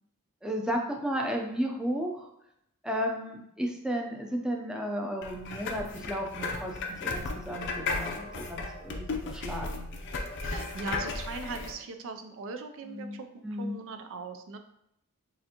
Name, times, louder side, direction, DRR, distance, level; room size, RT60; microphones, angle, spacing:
voice 1, 0.4-2.3 2.8-9.9 12.8-13.8, equal, 5° right, 1 dB, 0.5 m, -34 dB
sound 1, 5.2-11.7, left 3 dB, 55° left, 0.6 m, -35 dB
voice 2, 10.4-14.6, right 4 dB, 65° right, 6 dB, 0.4 m, -40 dB
6.6 x 2.6 x 2.8 m, 0.79 s
head